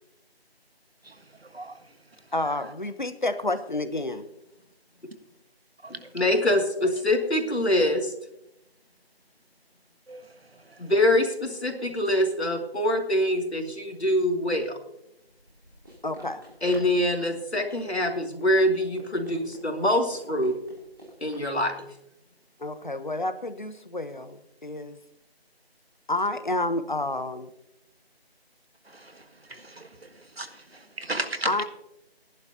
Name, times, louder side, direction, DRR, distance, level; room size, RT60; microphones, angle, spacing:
voice 1, 1.4-1.8 5.8-6.1 10.1-10.2 28.9-29.2 29.5-29.9 30.2-31.5, right 2 dB, 70° right, 8 dB, 1.7 m, -36 dB
voice 2, 2.3-4.3 16.0-16.4 22.6-25.0 26.1-27.5 31.4-31.6, left 2 dB, 50° left, 11 dB, 1.0 m, -29 dB
voice 3, 5.9-8.1 10.8-14.8 16.6-20.6 21.2-21.9, left 1 dB, 90° left, 4 dB, 2.6 m, -24 dB
Run, 15.3-21.5, right 1 dB, 20° right, 3.2 m, -49 dB
18.5 x 11.0 x 2.9 m, 0.82 s
figure-of-eight pair, 175°, 32 cm